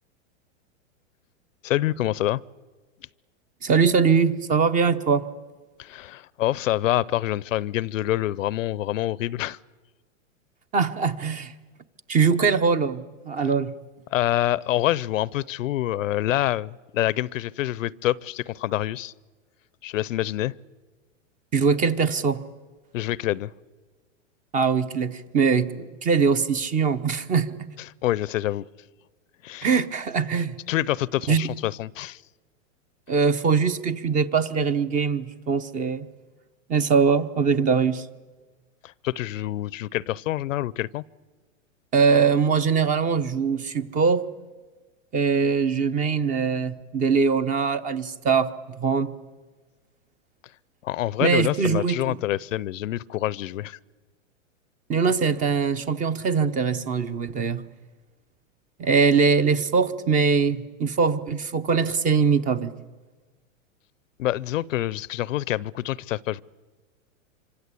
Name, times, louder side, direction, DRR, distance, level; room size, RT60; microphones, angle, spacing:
voice 1, 1.6-2.4 5.8-9.6 14.1-19.1 19.8-20.5 22.9-23.5 28.0-28.6 29.4-29.7 30.7-32.2 38.8-41.0 50.8-53.8 64.2-66.4, left 14 dB, 75° left, 0.7 m, -26 dB
voice 2, 3.6-5.3 10.7-11.5 12.1-13.7 21.5-22.4 24.5-27.7 29.6-30.6 31.3-31.4 33.1-36.1 36.7-38.1 41.9-44.2 45.1-48.5 48.8-49.1 51.2-52.2 54.9-57.6 58.8-62.7, right 5 dB, 20° right, 0.9 m, -22 dB
26.0 x 25.0 x 8.4 m
hypercardioid pair, 140°, 39 cm